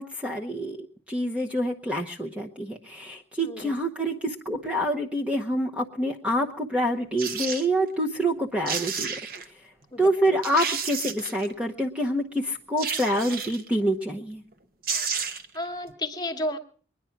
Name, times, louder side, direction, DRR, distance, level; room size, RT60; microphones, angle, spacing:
voice 1, 0.0-9.1 10.0-14.4, equal, 5° right, 1 dB, 0.9 m, -27 dB
voice 2, 3.4-3.7 9.9-10.4 15.5-16.6, left 1 dB, 20° left, 5 dB, 1.2 m, -32 dB
sound 1, 7.2-7.7 8.4-8.5 8.7-9.5 10.0-10.1 10.4-11.5 12.8-13.7 14.5-14.6 14.8-15.6 15.9-16.0, right 6 dB, 50° right, 1.1 m, -31 dB
22.5 x 10.5 x 5.8 m, 0.43 s
head